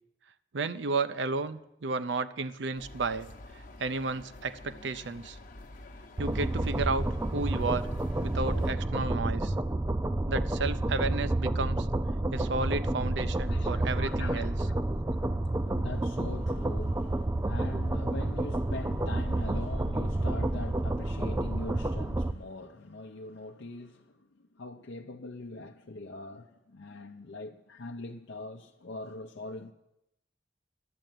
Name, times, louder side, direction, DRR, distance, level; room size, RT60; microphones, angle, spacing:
voice 1, 0.5-3.3 3.5-5.4 6.2-7.1 7.3-7.9 8.2-9.5 10.3-11.9 12.3-14.7, right 3 dB, 75° right, 0.6 m, -32 dB
sound 1, 2.8-8.7, left 2 dB, 50° left, 0.9 m, -49 dB
sound 2, 6.2-22.3, right 1 dB, 15° right, 0.4 m, -30 dB
voice 2, 13.5-29.7, left 2 dB, 75° left, 0.7 m, -43 dB
11.5 x 7.8 x 9.0 m
head